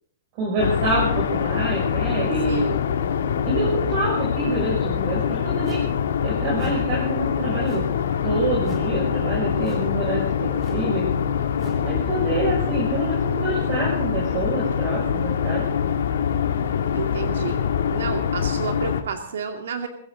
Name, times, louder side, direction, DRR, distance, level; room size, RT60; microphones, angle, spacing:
voice 1, 0.4-2.6 3.4-5.8 6.2-7.9 8.2-11.1 11.8-15.6, right 2 dB, 35° right, -4 dB, 6.2 m, -26 dB
sound 1, 0.6-19.0, left 8 dB, 85° left, 1.9 m, -24 dB
voice 2, 2.5-2.8 16.9-17.6 17.9-19.9, right 6 dB, 85° right, 5 dB, 2.4 m, -30 dB
sound 2, 5.6-6.0 6.5-6.9 7.6-8.0 8.6-9.0 9.6-10.0 10.6-10.9 11.5-11.9, right 1 dB, 15° right, 4.1 m, -39 dB
22.5 x 15.5 x 3.9 m, 0.62 s
hypercardioid pair, 165°, 0 cm